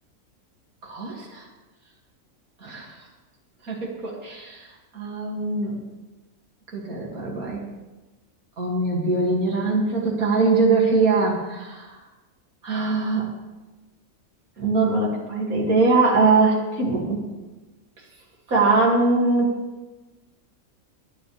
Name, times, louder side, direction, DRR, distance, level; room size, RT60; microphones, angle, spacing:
voice 1, 0.8-1.5 2.6-2.9 3.7-4.7 4.9-5.8 6.7-7.6 8.6-12.0 12.6-13.3 14.6-17.2 18.5-19.5, right 3 dB, 90° right, -3 dB, 3.0 m, -22 dB
20.0 x 9.8 x 3.4 m, 1.1 s
omnidirectional pair, 1.5 m